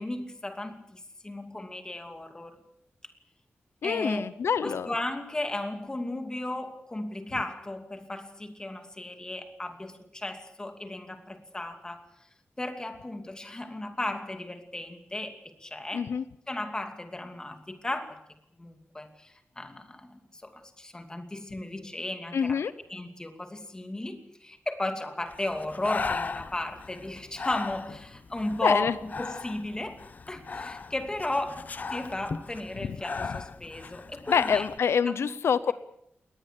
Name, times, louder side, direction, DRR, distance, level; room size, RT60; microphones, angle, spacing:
voice 1, 0.0-2.6 3.0-3.1 3.8-4.3 4.6-12.1 12.6-16.1 16.5-18.2 18.6-22.6 22.9-34.7 35.0-35.3 35.7-35.8, left 1 dB, 15° left, 7 dB, 2.6 m, -35 dB
voice 2, 3.8-4.9 15.9-16.2 22.3-22.7 28.6-28.9 34.3-35.7, left 7 dB, 90° left, 15 dB, 0.8 m, -26 dB
Breathing, 25.3-34.8, left 4 dB, 40° left, 0.9 m, -37 dB
21.0 x 19.5 x 8.4 m, 0.76 s
wide cardioid pair, 160°, 4 cm